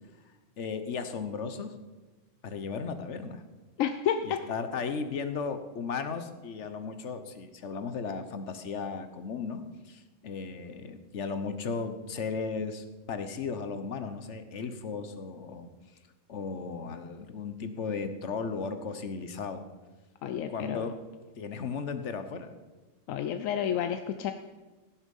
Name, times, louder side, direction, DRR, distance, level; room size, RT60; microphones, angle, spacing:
voice 1, 0.6-1.7 2.4-3.4 4.5-15.7 16.3-19.6 20.5-21.1 21.4-22.5, left 5 dB, 65° left, 9 dB, 1.2 m, -35 dB
voice 2, 3.8-4.4 20.2-20.9 23.1-24.3, left 9 dB, 90° left, 8 dB, 1.0 m, -30 dB
16.0 x 7.2 x 5.4 m, 1.2 s
omnidirectional pair, 1.3 m